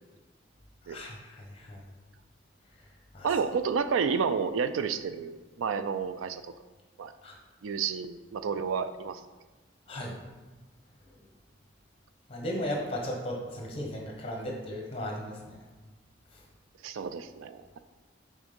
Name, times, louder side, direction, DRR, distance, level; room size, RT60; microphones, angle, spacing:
voice 1, 0.9-1.8 3.1-3.3 7.2-7.4 9.9-10.2 11.1-11.2 12.3-15.6 16.3-16.4, equal, 30° left, 0 dB, 1.2 m, -36 dB
voice 2, 3.2-6.5 7.0-7.1 7.6-9.2 16.8-17.6, right 6 dB, 90° right, 11 dB, 0.4 m, -30 dB
6.2 x 3.7 x 5.2 m, 1.3 s
head